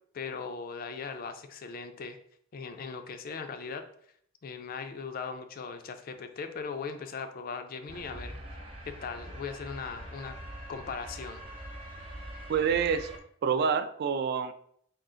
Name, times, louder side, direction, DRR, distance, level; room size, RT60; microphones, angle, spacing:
voice 1, 0.1-2.2 2.5-3.9 4.4-8.4 8.8-10.3 10.7-11.7, left 5 dB, 45° left, 8 dB, 0.4 m, -39 dB
sound 1, 7.9-13.2, right 1 dB, 25° right, 0.7 m, -43 dB
voice 2, 12.5-13.1 13.4-14.5, right 6 dB, 50° right, 11 dB, 0.3 m, -27 dB
3.8 x 2.4 x 3.7 m, 0.64 s
head